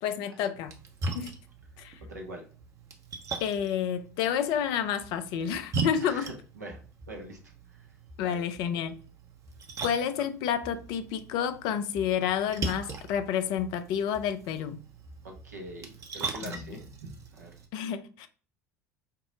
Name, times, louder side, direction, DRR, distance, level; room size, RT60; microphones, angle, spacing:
voice 1, 0.0-0.7 1.1-1.4 1.8-2.0 3.4-6.3 8.2-9.0 9.8-14.8 16.5-16.8 17.7-18.3, left 8 dB, 50° left, 0.4 m, -30 dB
Splash splatter, 0.5-17.7, right 3 dB, 35° right, 0.8 m, -40 dB
voice 2, 2.1-2.4 6.0-6.8 7.1-7.4 7.7-7.9 8.2-8.4 15.2-17.5, right 1 dB, 80° right, 0.8 m, -43 dB
4.6 x 2.0 x 3.5 m
figure-of-eight pair, 65°, 9 cm